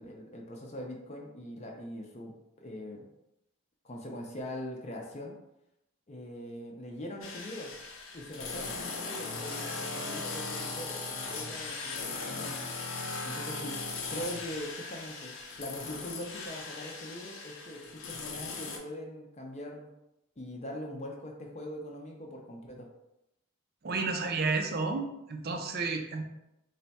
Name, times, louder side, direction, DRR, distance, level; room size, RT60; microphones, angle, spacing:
voice 1, 0.0-2.3 2.6-3.0 3.8-5.3 6.1-7.7 8.1-12.6 13.2-13.8 14.1-19.9 20.4-22.9, left 1 dB, 30° left, 0 dB, 0.5 m, -42 dB
sound 1, 7.2-18.8, left 3 dB, 70° left, 0.6 m, -38 dB
voice 2, 23.8-26.2, right 4 dB, 45° right, 4 dB, 0.4 m, -31 dB
3.3 x 2.2 x 4.0 m, 0.88 s
head